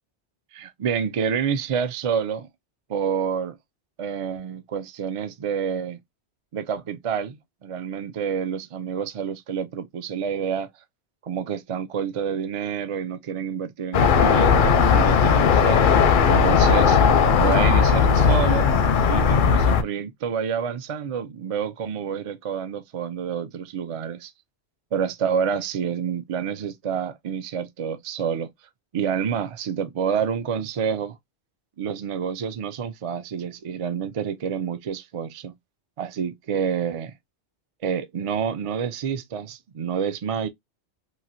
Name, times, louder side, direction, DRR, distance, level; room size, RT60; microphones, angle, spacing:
voice 1, 0.5-2.5 2.9-3.6 4.0-6.0 6.5-10.7 11.2-15.8 16.3-17.0 17.3-18.7 19.1-24.3 24.9-28.5 28.9-31.2 31.8-35.5 36.0-37.1 37.8-40.5, right 7 dB, 55° right, 0.3 m, -28 dB
sound 1, 13.9-19.8, left 6 dB, 60° left, 0.6 m, -17 dB
3.1 x 2.4 x 2.6 m
omnidirectional pair, 1.2 m